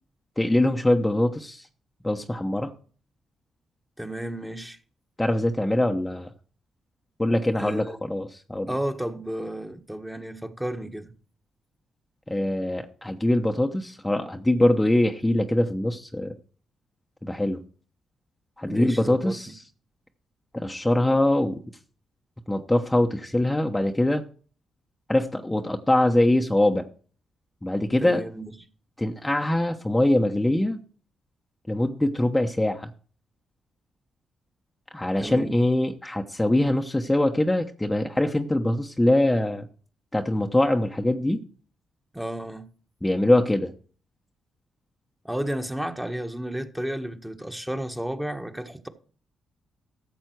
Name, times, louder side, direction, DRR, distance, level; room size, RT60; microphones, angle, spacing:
voice 1, 0.4-1.7 2.0-2.7 5.2-6.3 7.2-8.7 12.3-16.3 17.2-17.6 18.6-19.6 20.5-21.6 22.5-24.2 25.1-26.8 27.6-28.2 29.0-30.8 31.7-32.9 34.9-39.7 40.1-41.4 43.0-43.7, left 1 dB, 15° left, 1.0 m, -23 dB
voice 2, 4.0-4.8 7.6-8.0 8.7-11.1 18.7-19.3 28.0-28.5 35.2-35.6 42.1-42.7 45.2-48.9, right 1 dB, 5° right, 1.5 m, -32 dB
13.5 x 7.3 x 4.7 m
hypercardioid pair, 40°, 0 cm